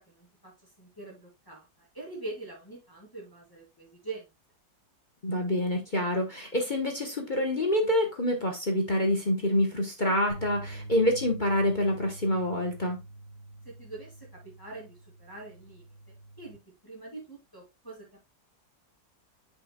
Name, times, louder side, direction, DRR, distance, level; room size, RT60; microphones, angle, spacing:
voice 1, 0.0-4.3 13.6-18.2, right 3 dB, 10° left, 2.5 m, -44 dB
voice 2, 5.2-13.0, left 1 dB, 35° left, 1.0 m, -27 dB
sound 1, 10.3-16.6, right 2 dB, 60° left, 3.0 m, -45 dB
7.8 x 6.0 x 2.3 m
omnidirectional pair, 2.0 m